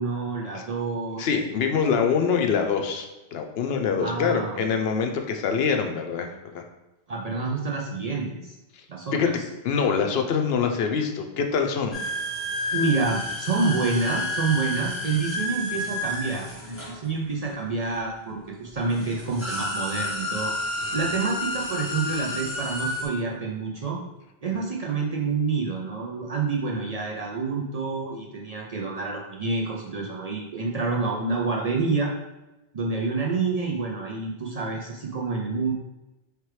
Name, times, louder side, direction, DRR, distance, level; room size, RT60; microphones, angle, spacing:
voice 1, 0.0-1.3 4.0-4.7 7.1-8.6 8.9-9.4 12.7-24.0 24.4-32.1 32.7-35.7, right 4 dB, 50° right, -2 dB, 0.5 m, -28 dB
voice 2, 1.2-6.6 9.1-12.0 20.8-21.1, left 6 dB, 75° left, 4 dB, 0.8 m, -25 dB
sound 1, 11.9-17.6 18.5-18.6 18.9-23.1, left 1 dB, 15° left, 1.2 m, -30 dB
4.6 x 3.3 x 3.2 m, 1.0 s
omnidirectional pair, 1.1 m